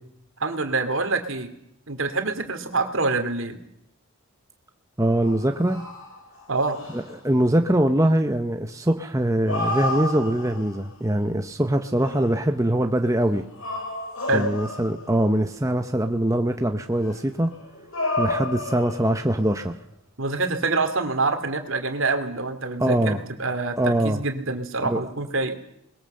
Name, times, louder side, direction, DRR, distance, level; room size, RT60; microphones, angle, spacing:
voice 1, 0.4-1.5 1.9-3.6 6.5-6.8 14.3-14.5 20.2-25.6, right 3 dB, 65° right, 8 dB, 2.5 m, -26 dB
voice 2, 5.0-5.8 6.9-13.4 14.3-17.5 18.2-19.7 22.8-23.2 23.8-24.2 24.8-25.0, right 1 dB, 15° right, 5 dB, 0.9 m, -22 dB
sound 1, 5.2-7.2 9.2-10.9 11.8-12.4 13.3-15.3 17.0-19.5, left 2 dB, 70° left, 5.8 m, -31 dB
21.0 x 20.0 x 7.7 m, 0.74 s
head